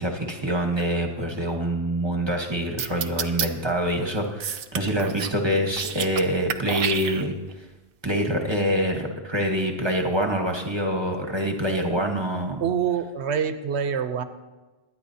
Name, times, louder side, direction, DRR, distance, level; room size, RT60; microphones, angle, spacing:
voice 1, 0.0-7.3 8.0-12.6, equal, 25° right, 2 dB, 1.3 m, -25 dB
sound 1, 2.8-3.5 4.4-5.4 5.7-6.2 6.5-7.5, right 8 dB, 65° right, 0.8 m, -29 dB
voice 2, 12.6-14.2, right 7 dB, 85° right, 10 dB, 1.0 m, -25 dB
22.0 x 9.9 x 2.8 m, 1.2 s
omnidirectional pair, 1.1 m